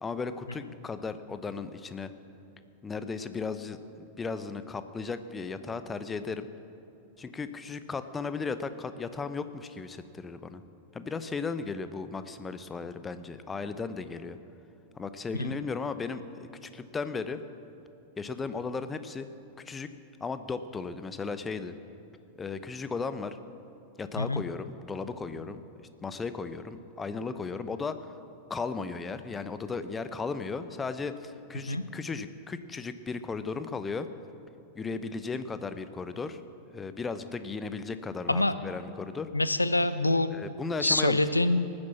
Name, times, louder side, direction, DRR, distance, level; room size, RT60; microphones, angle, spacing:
voice 1, 0.0-2.1 2.8-6.5 7.2-10.6 10.9-14.4 15.0-17.4 18.2-19.3 19.7-19.9 20.2-21.7 22.4-23.4 24.0-28.1 28.5-34.1 34.7-36.4 36.7-39.3 40.3-41.2, left 4 dB, 15° left, 11 dB, 0.9 m, -36 dB
voice 2, 39.3-40.3 40.8-41.7, left 2 dB, 85° left, 12 dB, 0.7 m, -25 dB
19.0 x 9.8 x 7.2 m, 2.9 s
figure-of-eight pair, 90°, 0 cm